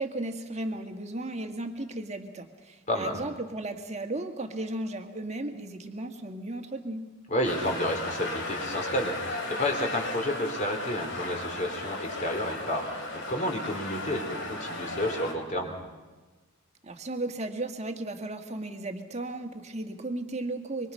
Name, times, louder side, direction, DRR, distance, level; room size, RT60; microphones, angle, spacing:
voice 1, 0.0-7.0 16.8-20.9, right 2 dB, 30° right, 6 dB, 1.8 m, -35 dB
voice 2, 2.9-3.2 7.3-15.8, left 1 dB, 35° left, 3 dB, 3.8 m, -31 dB
sound 1, 7.4-15.3, left 2 dB, 55° left, 3.0 m, -35 dB
25.5 x 24.0 x 5.6 m, 1.2 s
head